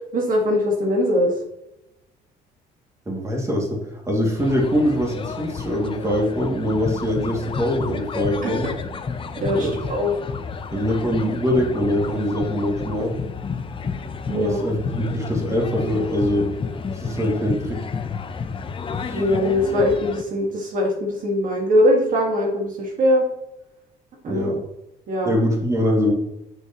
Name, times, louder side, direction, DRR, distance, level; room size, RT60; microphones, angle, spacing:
voice 1, 0.1-1.3 8.4-8.5 9.4-10.1 14.3-14.7 19.1-23.2 24.2-24.6 25.1-25.3, left 1 dB, 50° right, 0 dB, 1.8 m, -21 dB
voice 2, 3.1-3.8 4.1-8.7 9.5-9.8 10.7-13.1 14.3-16.5 16.9-17.8 19.0-19.2 24.3-24.6 25.2-26.1, equal, 15° right, -1 dB, 2.3 m, -23 dB
sound 1, 4.4-20.2, left 5 dB, 30° left, 0.7 m, -31 dB
8.0 x 6.8 x 3.0 m, 0.88 s
cardioid pair, 110°, 17 cm